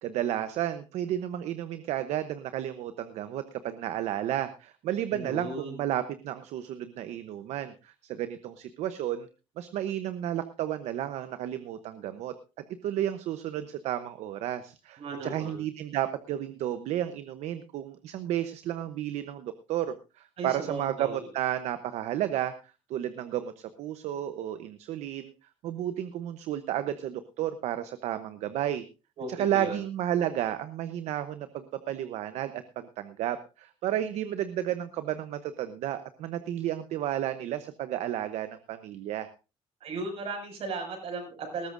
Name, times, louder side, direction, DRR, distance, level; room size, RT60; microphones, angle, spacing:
voice 1, 0.0-9.3 9.6-12.3 12.8-22.5 22.9-25.3 25.6-28.8 29.3-39.3, right 11 dB, 80° right, 11 dB, 0.9 m, -32 dB
voice 2, 5.1-5.8 15.0-15.6 20.4-21.3 29.2-29.8 39.8-41.7, right 3 dB, 60° right, 3 dB, 6.3 m, -36 dB
19.5 x 13.5 x 2.6 m, 0.31 s
cardioid pair, 110°, 11 cm